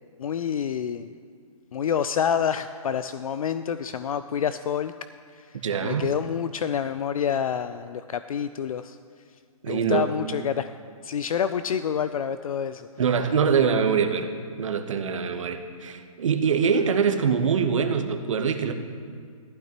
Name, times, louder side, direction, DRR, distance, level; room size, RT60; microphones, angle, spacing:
voice 1, 0.2-1.2 1.7-4.9 5.4-5.5 5.8-9.0 9.7-10.8 11.0-12.9, left 8 dB, 70° left, 12 dB, 0.4 m, -28 dB
voice 2, 5.6-6.1 9.6-10.1 13.0-14.3 14.6-18.7, right 6 dB, 60° right, 6 dB, 1.1 m, -24 dB
15.0 x 12.0 x 3.0 m, 2.1 s
hypercardioid pair, 160°, 19 cm